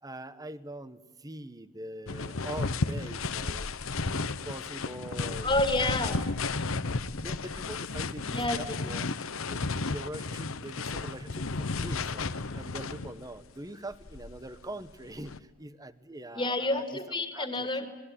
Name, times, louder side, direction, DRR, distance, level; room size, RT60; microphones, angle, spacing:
voice 1, 0.0-3.7 4.1-5.5 6.1-6.2 7.2-9.1 9.5-16.8 17.3-17.7, right 1 dB, 15° right, 13 dB, 1.1 m, -43 dB
sound 1, 2.1-13.3 13.9-15.4, left 3 dB, 70° left, 1.0 m, -33 dB
voice 2, 5.4-6.1 8.2-8.9 16.3-17.9, left 2 dB, 20° left, 7 dB, 2.5 m, -29 dB
26.0 x 21.0 x 9.9 m, 1.3 s
head